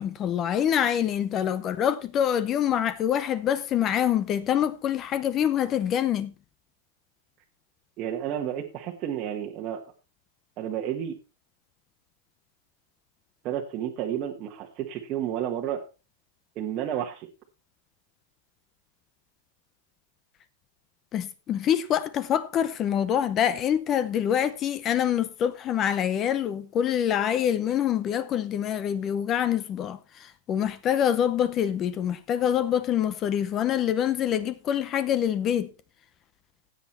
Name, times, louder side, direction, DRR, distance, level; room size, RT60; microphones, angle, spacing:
voice 1, 0.0-6.3 21.1-35.7, left 9 dB, 20° left, 0.7 m, -25 dB
voice 2, 8.0-9.8 10.6-11.2 13.4-15.8 16.5-17.3, right 10 dB, 25° right, 1.3 m, -31 dB
16.0 x 8.3 x 4.3 m
supercardioid pair, 175°, 0 cm